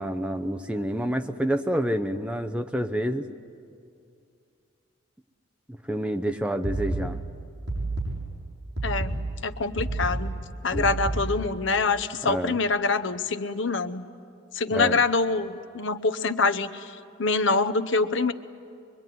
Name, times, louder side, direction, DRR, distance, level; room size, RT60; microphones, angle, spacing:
voice 1, 0.0-3.3 5.9-7.2 10.7-10.9 12.3-12.6 14.7-15.0, equal, 5° right, 6 dB, 0.7 m, -28 dB
sound 1, 6.6-11.6, right 2 dB, 55° right, 8.0 m, -31 dB
voice 2, 8.8-9.2 9.4-10.3 10.6-14.0 14.5-16.9 17.2-18.3, left 3 dB, 65° left, 12 dB, 0.8 m, -25 dB
23.5 x 23.5 x 9.3 m, 2.4 s
head